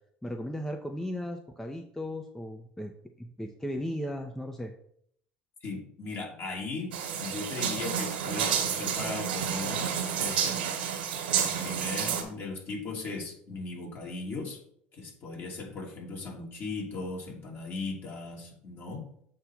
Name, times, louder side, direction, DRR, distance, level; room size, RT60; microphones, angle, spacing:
voice 1, 0.2-2.9 3.2-4.7, equal, 10° left, 5 dB, 0.8 m, -36 dB
voice 2, 5.6-9.9 10.2-10.8 11.3-14.6 14.9-19.1, left 3 dB, 45° left, -2 dB, 3.0 m, -38 dB
sound 1, 6.9-12.2, right 8 dB, 80° right, 1.4 m, -30 dB
7.6 x 3.4 x 6.0 m, 0.67 s
hypercardioid pair, 70°, 5 cm